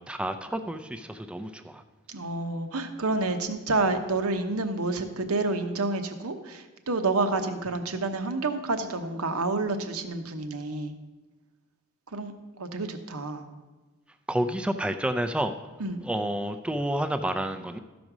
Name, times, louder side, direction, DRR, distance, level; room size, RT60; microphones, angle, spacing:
voice 1, 0.0-1.8 14.3-15.5 16.0-17.8, right 1 dB, 5° right, 8 dB, 0.4 m, -29 dB
voice 2, 2.1-10.9 12.1-12.3 12.6-13.5 15.8-16.0, right 3 dB, 80° right, 7 dB, 1.0 m, -29 dB
13.5 x 5.2 x 6.0 m, 1.2 s
head